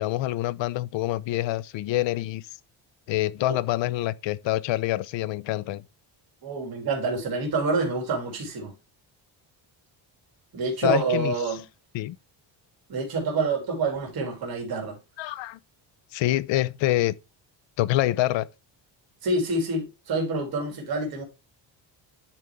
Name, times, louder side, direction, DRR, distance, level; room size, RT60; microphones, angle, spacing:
voice 1, 0.0-2.5 3.1-5.8 10.8-11.3 11.9-12.2 15.2-15.6 16.1-17.1 17.8-18.5, left 16 dB, 75° left, 0.6 m, -26 dB
voice 2, 6.4-8.7 10.5-11.6 12.9-15.0 19.2-21.2, right 3 dB, 50° right, 3.0 m, -27 dB
10.0 x 4.4 x 3.5 m
cardioid pair, 155°, 45 cm